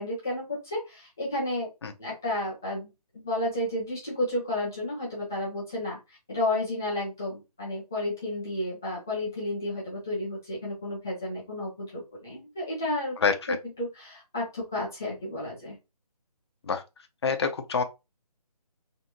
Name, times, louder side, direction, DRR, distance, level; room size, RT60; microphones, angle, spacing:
voice 1, 0.0-1.7 2.0-13.2 13.8-15.8, left 1 dB, 5° left, 0.4 m, -32 dB
voice 2, 13.2-13.6 16.6-16.8 17.2-17.8, left 5 dB, 40° left, 0.7 m, -26 dB
3.9 x 3.4 x 2.9 m
figure-of-eight pair, 165°, 20 cm